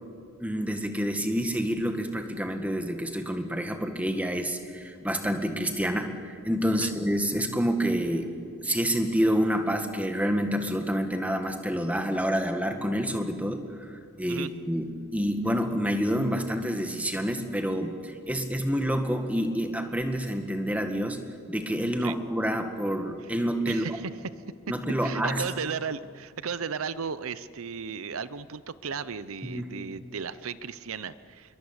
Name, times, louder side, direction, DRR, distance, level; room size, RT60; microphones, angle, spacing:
voice 1, 0.4-8.3 8.6-23.9 24.7-25.4 29.4-29.7, equal, 5° right, 6 dB, 1.7 m, -28 dB
voice 2, 23.7-24.1 25.0-31.6, right 6 dB, 75° right, 15 dB, 0.7 m, -35 dB
27.5 x 22.5 x 8.1 m, 2.3 s
head